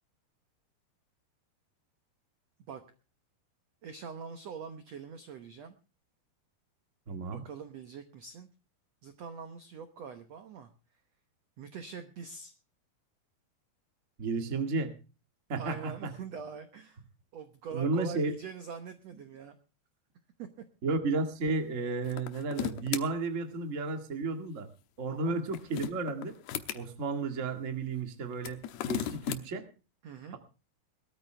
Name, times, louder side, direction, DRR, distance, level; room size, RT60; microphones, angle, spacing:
voice 1, 3.8-5.7 7.3-8.5 9.0-10.7 11.6-12.5 15.6-17.0 17.3-19.6 20.4-20.5 25.1-25.4 30.0-30.4, right 6 dB, 70° right, 9 dB, 1.6 m, -43 dB
voice 2, 7.1-7.4 14.2-14.9 15.5-16.1 17.7-18.3 20.8-24.7 25.0-26.3 26.7-28.6 28.9-29.7, right 3 dB, 35° right, 6 dB, 1.2 m, -32 dB
sound 1, 22.0-23.0 25.3-26.8 28.3-29.4, left 11 dB, 80° left, 3.0 m, -35 dB
20.5 x 13.5 x 3.4 m, 0.33 s
omnidirectional pair, 4.6 m